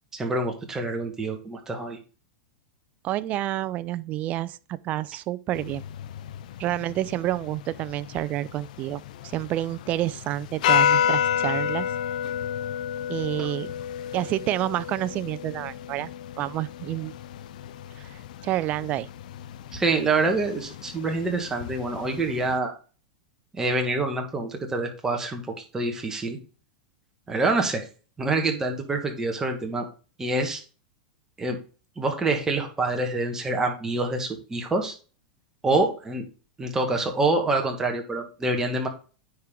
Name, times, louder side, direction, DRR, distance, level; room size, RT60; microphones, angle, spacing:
voice 1, 0.1-2.0 13.4-13.5 19.7-22.7 23.5-26.4 27.3-27.9 28.2-29.8 30.2-30.6 31.4-31.6 32.0-34.9 35.6-36.2 36.6-38.9, right 2 dB, 10° right, 1.7 m, -26 dB
voice 2, 3.0-5.8 6.6-9.0 9.3-11.9 13.1-13.7 14.1-16.1 16.4-17.1 18.0-19.1, right 14 dB, 35° right, 0.4 m, -29 dB
sound 1, 5.5-22.6, left 9 dB, 70° left, 0.5 m, -31 dB
9.5 x 4.5 x 3.8 m
supercardioid pair, 135°, 4 cm